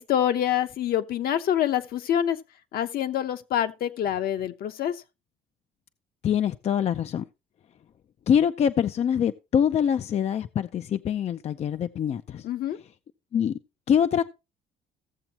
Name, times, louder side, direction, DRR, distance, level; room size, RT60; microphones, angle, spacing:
voice 1, 0.0-2.4 2.7-5.0 12.4-12.8, left 10 dB, 65° left, 0.9 m, -26 dB
voice 2, 6.2-7.2 8.3-12.4 13.3-13.5 13.9-14.2, left 8 dB, 40° left, 0.4 m, -24 dB
15.5 x 7.1 x 2.9 m
cardioid pair, 110°, 17 cm